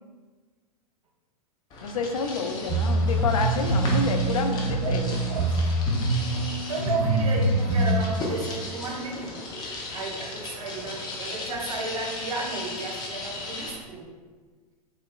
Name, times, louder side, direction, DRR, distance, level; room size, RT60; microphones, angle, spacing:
sound 1, 1.7-13.7, left 2 dB, 20° left, 0.7 m, -37 dB
voice 1, 1.8-5.2, left 4 dB, 60° left, 5 dB, 0.4 m, -29 dB
sound 2, 2.7-8.0, right 2 dB, 10° right, 0.9 m, -24 dB
voice 2, 5.3-5.7 6.7-9.4 9.9-14.1, right 3 dB, 60° right, -1 dB, 0.9 m, -33 dB
4.4 x 3.4 x 2.2 m, 1.4 s
figure-of-eight pair, 100°, 20 cm